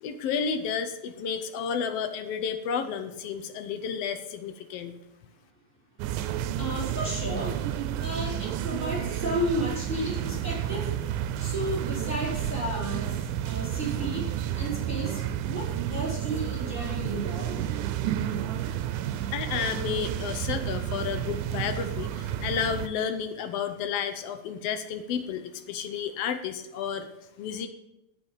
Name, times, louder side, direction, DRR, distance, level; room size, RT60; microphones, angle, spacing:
voice 1, 0.0-5.0 19.3-27.1 27.4-27.7, left 7 dB, 75° left, 8 dB, 1.4 m, -31 dB
sound 1, 6.0-22.9, right 11 dB, 90° right, 2.1 m, -31 dB
voice 2, 6.6-7.5 8.0-10.8 11.4-13.1 13.4-17.5, equal, 5° left, -5 dB, 3.3 m, -33 dB
8.9 x 8.0 x 5.4 m, 0.87 s
omnidirectional pair, 3.5 m